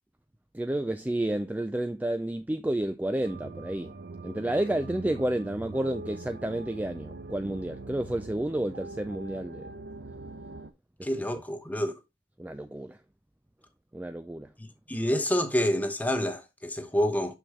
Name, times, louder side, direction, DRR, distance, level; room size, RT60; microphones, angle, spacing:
voice 1, 0.5-4.0 4.2-9.7 11.0-11.4 12.4-13.0 13.9-14.5, right 1 dB, 10° right, 0.3 m, -31 dB
sound 1, 3.2-10.7, right 3 dB, 70° right, 0.7 m, -43 dB
voice 2, 11.0-11.9 14.6-17.4, equal, 10° left, 0.9 m, -28 dB
6.3 x 6.2 x 3.1 m
head